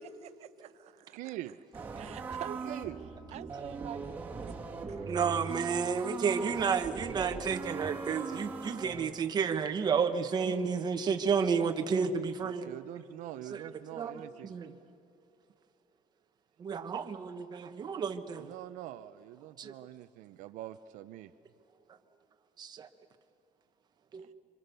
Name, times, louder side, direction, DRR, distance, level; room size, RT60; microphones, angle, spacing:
voice 1, 0.2-1.4 2.0-2.8 3.3-4.0 4.5-4.6 4.9-5.2 14.1-14.4 24.2-24.3, right 12 dB, 55° right, 11 dB, 0.9 m, -47 dB
voice 2, 1.1-1.6 2.6-3.0 12.4-14.6 18.3-21.3, right 14 dB, 85° right, 10 dB, 0.7 m, -44 dB
sound 1, 1.7-9.1, right 4 dB, 15° right, 2.5 m, -40 dB
voice 3, 5.1-12.7 13.5-13.6 13.9-14.7 16.6-18.5 19.6-19.7 22.6-22.9 24.1-24.3, right 6 dB, 35° right, 6 dB, 1.1 m, -31 dB
27.0 x 25.5 x 6.9 m, 2.8 s
cardioid pair, 150°, 13 cm